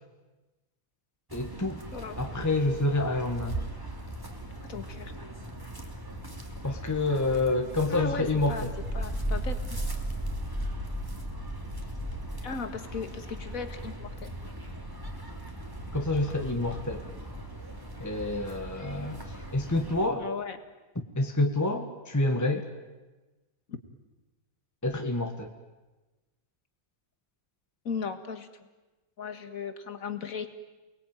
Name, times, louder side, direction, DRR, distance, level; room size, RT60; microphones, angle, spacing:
voice 1, 1.3-1.8 2.2-3.6 6.6-8.7 15.9-17.0 18.0-19.2 19.5-20.3 21.2-22.7 24.8-25.5, left 2 dB, 10° left, 3 dB, 1.7 m, -28 dB
sound 1, 1.3-20.1, right 1 dB, 15° right, 3.0 m, -37 dB
voice 2, 1.9-2.2 4.7-5.1 7.9-8.7 8.9-9.6 12.4-14.3 20.2-20.6 27.9-28.5 29.2-30.5, left 5 dB, 70° left, 8 dB, 2.2 m, -36 dB
29.0 x 21.0 x 9.2 m, 1.2 s
omnidirectional pair, 1.5 m